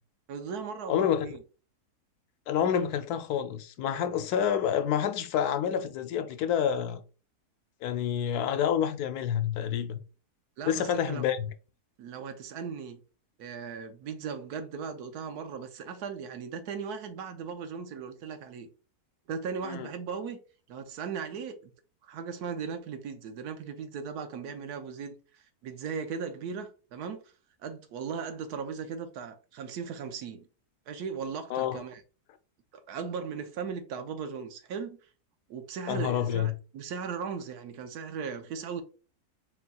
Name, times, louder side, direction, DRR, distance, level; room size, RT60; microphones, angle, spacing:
voice 1, 0.3-1.4 10.6-11.2 12.0-13.0 13.4-18.7 19.3-20.4 20.7-21.7 22.0-27.2 27.6-30.5 30.9-32.0 32.7-35.0 35.5-38.8, right 6 dB, 85° right, 1.2 m, -37 dB
voice 2, 0.9-1.4 2.5-7.0 7.8-10.0 10.7-11.4 19.6-19.9 31.5-31.8 35.9-36.5, left 9 dB, 80° left, 1.1 m, -28 dB
4.3 x 4.0 x 2.3 m
omnidirectional pair, 1.6 m